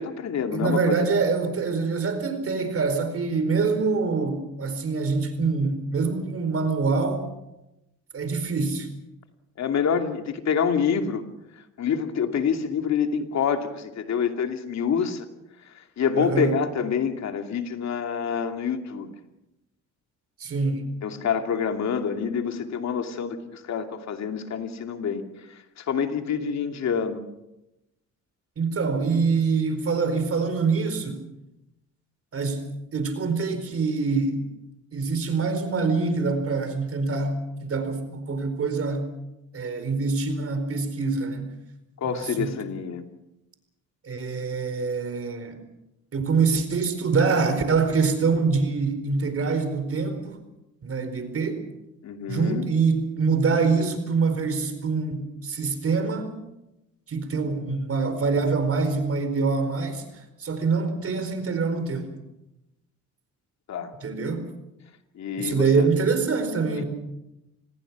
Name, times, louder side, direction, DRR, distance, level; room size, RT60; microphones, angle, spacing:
voice 1, 0.0-1.0 9.6-11.2 11.6-15.3 15.7-19.1 21.0-27.2 42.0-43.1 52.0-52.7 63.7-63.9 65.1-65.9 66.7-66.8, left 7 dB, 65° left, 5 dB, 2.6 m, -27 dB
voice 2, 0.5-7.2 8.1-8.9 16.1-16.5 20.4-20.9 28.6-31.3 32.3-34.4 34.9-39.1 39.5-41.5 42.1-42.5 44.0-45.6 46.1-50.4 50.8-51.6 52.3-56.4 57.1-62.1 64.0-64.4 65.4-66.8, right 4 dB, 50° right, 9 dB, 4.5 m, -25 dB
26.5 x 19.5 x 6.1 m, 0.93 s
cardioid pair, 90°, 30 cm